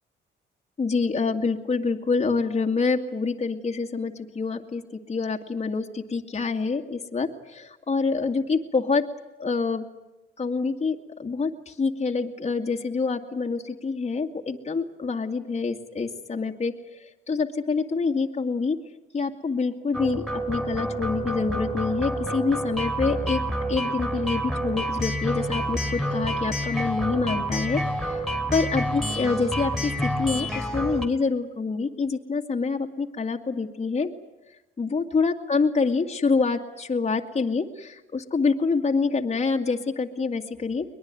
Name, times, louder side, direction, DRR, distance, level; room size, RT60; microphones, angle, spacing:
voice 1, 0.8-9.1 9.4-9.9 10.4-18.8 19.1-23.4 23.7-28.2 28.5-34.1 34.8-40.9, left 4 dB, 35° left, 2 dB, 2.2 m, -26 dB
sound 1, 19.9-31.1, equal, ahead, 3.7 m, -28 dB
23.0 x 21.0 x 9.3 m, 1.0 s
cardioid pair, 90°, 20 cm